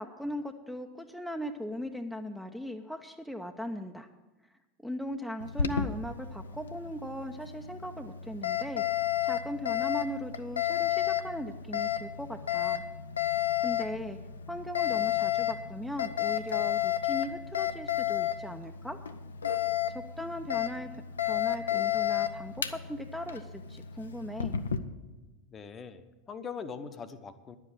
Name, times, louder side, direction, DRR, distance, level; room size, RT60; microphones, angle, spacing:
voice 1, 0.0-4.1 4.8-12.8 13.6-14.2 14.5-19.0 19.9-24.6, equal, ahead, 4 dB, 0.6 m, -38 dB
Alarm, 5.4-24.8, left 10 dB, 75° left, 0.6 m, -32 dB
voice 2, 25.5-27.6, left 6 dB, 25° left, 10 dB, 0.8 m, -42 dB
10.5 x 7.5 x 8.5 m, 1.2 s
figure-of-eight pair, 80°, 0 cm